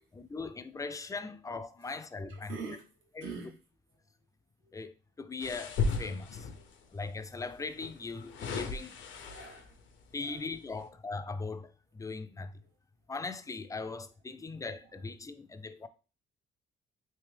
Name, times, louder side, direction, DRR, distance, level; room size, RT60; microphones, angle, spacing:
voice 1, 0.1-2.6 3.2-3.3 4.7-6.5 6.9-9.0 10.1-12.5 13.1-15.9, left 4 dB, 15° left, 0.4 m, -40 dB
voice 2, 2.3-3.5 4.6-4.7 6.6-6.7 9.2-9.8 10.2-10.5 12.6-12.7 13.8-13.9 14.4-14.6, right 4 dB, 80° right, 1.2 m, -45 dB
sound 1, 5.4-6.7 7.8-9.8 10.4-10.5, left 4 dB, 75° left, 0.7 m, -35 dB
3.4 x 3.0 x 3.3 m
cardioid pair, 90°, 20 cm